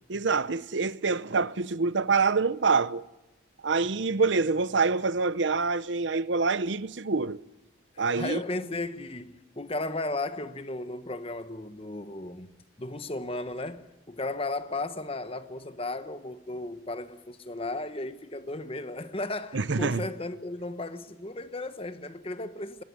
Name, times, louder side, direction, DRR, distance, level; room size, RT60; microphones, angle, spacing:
voice 1, 0.1-3.0 3.6-7.4 8.0-8.4 19.5-20.0, right 4 dB, 65° right, 0.7 m, -26 dB
voice 2, 7.9-12.5 12.8-22.8, left 2 dB, 30° left, 1.1 m, -35 dB
21.5 x 20.5 x 9.7 m
head